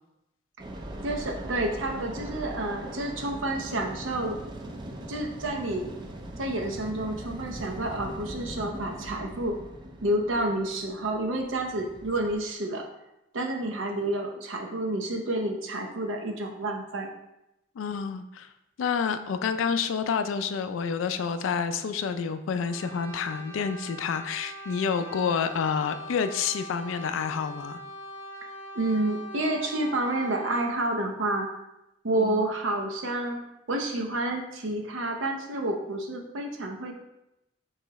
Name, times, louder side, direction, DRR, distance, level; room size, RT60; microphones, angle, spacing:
sound 1, 0.6-12.4, right 1 dB, 25° right, 0.4 m, -40 dB
voice 1, 1.0-4.4 5.1-5.9 6.4-9.6 10.0-12.8 13.3-17.1 28.7-31.5 32.0-33.4 33.7-36.9, right 1 dB, 80° right, 2 dB, 0.6 m, -29 dB
voice 2, 17.8-18.5 18.8-27.8 32.2-32.5, left 6 dB, 85° left, 10 dB, 0.3 m, -29 dB
Brass instrument, 22.6-30.8, equal, 15° left, 0.7 m, -42 dB
3.1 x 2.9 x 4.6 m, 0.89 s
head